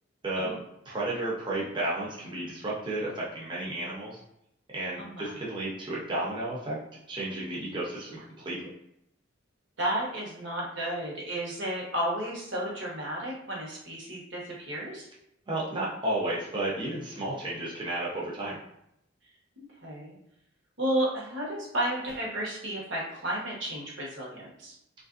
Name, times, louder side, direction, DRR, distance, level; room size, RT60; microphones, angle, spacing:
voice 1, 0.9-4.2 4.7-6.8 7.1-8.7 15.5-18.6, right 1 dB, 25° right, -6 dB, 0.6 m, -32 dB
voice 2, 5.0-5.4 9.8-15.1 19.8-20.2 20.8-24.7, right 1 dB, 65° right, -3 dB, 1.0 m, -32 dB
3.2 x 2.5 x 2.4 m, 0.78 s
head